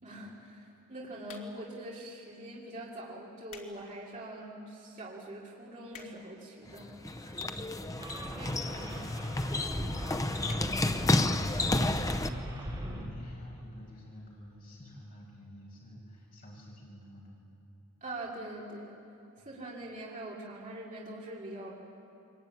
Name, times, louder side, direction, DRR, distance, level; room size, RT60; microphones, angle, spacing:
voice 1, 0.0-7.5 8.3-8.5 8.7-8.8 10.9-11.3 18.0-18.9 19.5-21.7, right 1 dB, 35° right, -5 dB, 3.6 m, -43 dB
sound 1, 1.2-1.8 2.5-2.7 3.2-3.8 4.2-4.3 4.9-5.0 5.2-5.3 5.5-6.4 7.2-7.3 8.0-8.4 8.7-8.8 9.0-9.1 9.3-9.4 9.7-9.9 10.4-10.7 11.1-11.2 11.4-11.5, left 6 dB, 65° left, 2.9 m, -51 dB
sound 2, 6.7-12.3, left 2 dB, 15° left, 0.7 m, -31 dB
voice 2, 7.9-9.6 11.9-17.4 19.4-19.5, left 1 dB, 40° left, -4 dB, 6.7 m, -48 dB
sound 3, 8.0-13.1, equal, 20° right, 4.8 m, -40 dB
23.5 x 22.0 x 9.5 m, 2.7 s
head